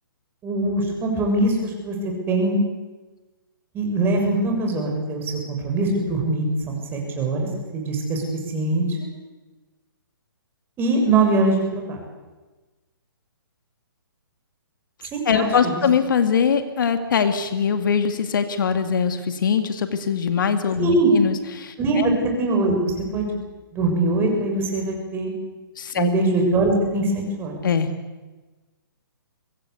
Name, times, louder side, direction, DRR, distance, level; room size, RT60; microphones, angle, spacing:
voice 1, 0.4-2.6 3.7-7.5 7.7-8.2 8.5-9.0 10.8-12.0 15.1-15.7 20.8-21.1 21.8-22.1 22.4-23.2 23.7-25.3 26.0-27.5, right 2 dB, 20° right, 1 dB, 6.8 m, -22 dB
voice 2, 15.3-22.1 25.8-26.1 27.6-27.9, left 6 dB, 60° left, 9 dB, 2.2 m, -22 dB
24.0 x 20.5 x 8.4 m, 1.2 s
hypercardioid pair, 140°, 12 cm